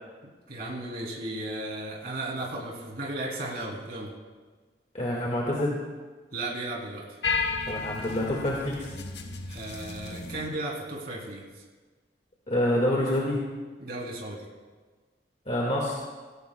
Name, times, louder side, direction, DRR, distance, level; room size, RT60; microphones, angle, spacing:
voice 1, 0.5-4.1 6.3-7.2 9.5-11.6 13.8-14.4, right 2 dB, 55° right, -2 dB, 2.9 m, -35 dB
voice 2, 4.9-5.8 7.7-8.9 12.5-13.4 15.5-16.0, left 1 dB, 40° left, -3 dB, 1.8 m, -27 dB
sound 1, 7.2-10.5, left 4 dB, 70° left, 1.1 m, -33 dB
17.5 x 16.0 x 2.2 m, 1.4 s
head